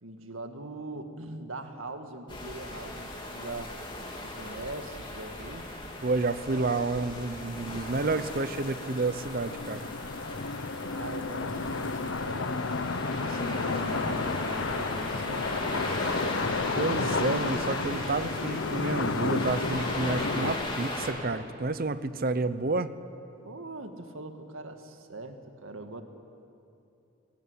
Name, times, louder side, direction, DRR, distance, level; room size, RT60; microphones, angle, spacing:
voice 1, 0.0-3.7 4.2-5.7 10.8-12.5 12.9-15.5 23.4-26.0, right 2 dB, 80° right, 6 dB, 1.9 m, -41 dB
sound 1, 2.3-21.1, left 1 dB, 25° left, 3.1 m, -37 dB
sound 2, 5.4-5.5 5.8-5.9 6.1-20.5, left 3 dB, 65° left, 0.8 m, -32 dB
voice 2, 6.0-9.9 16.8-22.9, right 3 dB, 45° right, 13 dB, 0.8 m, -30 dB
24.0 x 18.0 x 9.7 m, 2.7 s
head